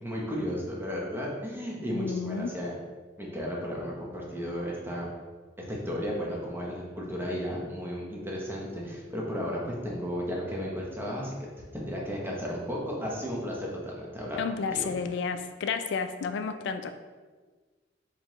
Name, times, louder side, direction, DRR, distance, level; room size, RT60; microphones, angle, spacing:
voice 1, 0.0-2.8 3.2-5.1 5.6-11.3 11.7-14.4 14.7-14.9, equal, 10° right, -3 dB, 0.7 m, -34 dB
voice 2, 1.9-2.5 14.4-16.9, left 5 dB, 65° left, 10 dB, 0.3 m, -31 dB
4.2 x 3.0 x 3.0 m, 1.4 s
head